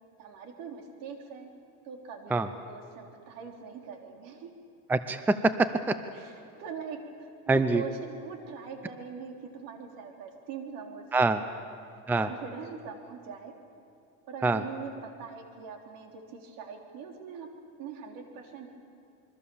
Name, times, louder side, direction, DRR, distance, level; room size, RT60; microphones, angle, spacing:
voice 1, 0.2-1.5 1.8-4.5 6.1-13.5 14.2-17.5 17.8-18.7, right 6 dB, 70° right, 2 dB, 3.6 m, -42 dB
voice 2, 4.9-6.0 7.5-7.8 11.1-11.4 12.1-12.3 14.4-14.6, right 3 dB, 5° right, 11 dB, 0.5 m, -25 dB
26.5 x 23.0 x 7.1 m, 2.5 s
cardioid pair, 150°, 35 cm